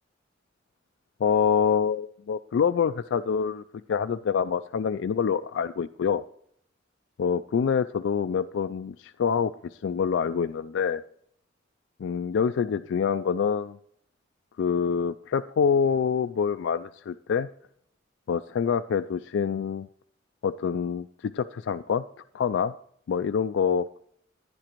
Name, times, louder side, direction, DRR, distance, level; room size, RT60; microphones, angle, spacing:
voice 1, 1.2-3.6 3.9-6.2 7.2-11.0 12.0-13.8 14.6-17.5 18.3-19.9 20.4-22.0 22.3-22.7 23.1-23.9, left 6 dB, 80° left, 11 dB, 0.3 m, -26 dB
15.0 x 10.5 x 3.0 m, 0.68 s
head